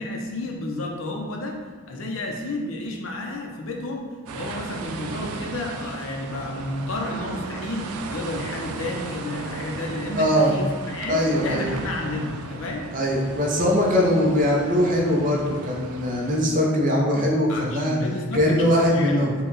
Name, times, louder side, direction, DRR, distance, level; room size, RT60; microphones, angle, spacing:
voice 1, 0.0-1.6 1.9-4.1 4.3-12.9 17.5-19.3, left 2 dB, 65° left, 1 dB, 0.7 m, -31 dB
sound 1, 4.3-16.4, right 4 dB, 90° right, 0.4 m, -36 dB
voice 2, 10.1-10.5 11.1-11.7 12.9-18.0 18.3-19.3, equal, 40° right, -2 dB, 0.7 m, -21 dB
5.6 x 2.3 x 3.9 m, 1.5 s
head